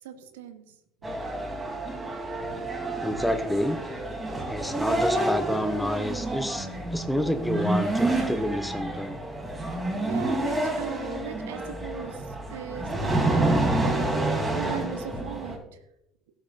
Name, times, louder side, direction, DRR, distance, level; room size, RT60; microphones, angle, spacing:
voice 1, 0.0-0.7 9.6-15.8, right 8 dB, 80° right, 9 dB, 1.1 m, -38 dB
sound 1, 1.0-15.6, right 2 dB, 20° right, 3.4 m, -28 dB
voice 2, 3.0-3.8 4.5-9.2, equal, 5° left, 9 dB, 1.0 m, -29 dB
18.0 x 8.0 x 2.6 m, 0.82 s
hypercardioid pair, 60°, 0 cm